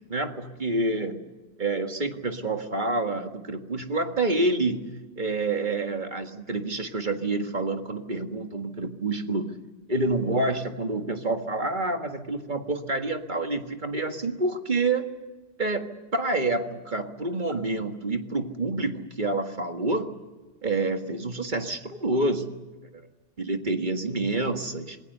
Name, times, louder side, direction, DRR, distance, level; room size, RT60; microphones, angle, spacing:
voice 1, 0.1-1.2 1.6-9.5 9.9-15.1 15.6-20.2 20.6-22.5 23.4-25.0, right 2 dB, 35° right, 5 dB, 1.9 m, -28 dB
27.5 x 21.5 x 6.8 m, 1.2 s
omnidirectional pair, 1.3 m